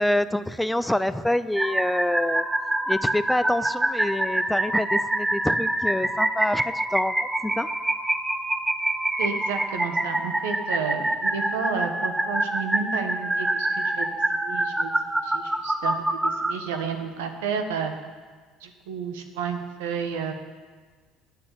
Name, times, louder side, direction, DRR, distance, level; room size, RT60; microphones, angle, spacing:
voice 1, 0.0-2.4 2.9-7.2 7.4-7.7, left 1 dB, 5° left, 14 dB, 0.5 m, -26 dB
sound 1, 1.6-16.5, right 1 dB, 10° right, 0.9 m, -26 dB
voice 2, 9.2-14.1 14.4-14.9 15.2-17.9 18.6-20.3, right 6 dB, 85° right, 6 dB, 1.3 m, -31 dB
8.9 x 7.6 x 8.3 m, 1.5 s
hypercardioid pair, 75°, 0 cm